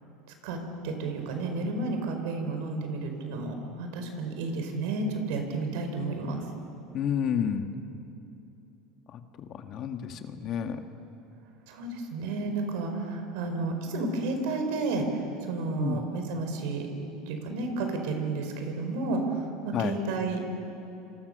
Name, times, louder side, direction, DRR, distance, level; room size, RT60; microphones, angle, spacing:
voice 1, 0.8-6.4 11.7-16.9 17.3-20.4, right 3 dB, 75° right, 5 dB, 5.1 m, -31 dB
voice 2, 6.9-7.7 9.1-9.2 9.5-10.8 15.8-16.0 19.7-19.9, left 8 dB, 45° left, 6 dB, 1.8 m, -30 dB
27.5 x 26.0 x 6.9 m, 2.8 s
supercardioid pair, 115°, 0 cm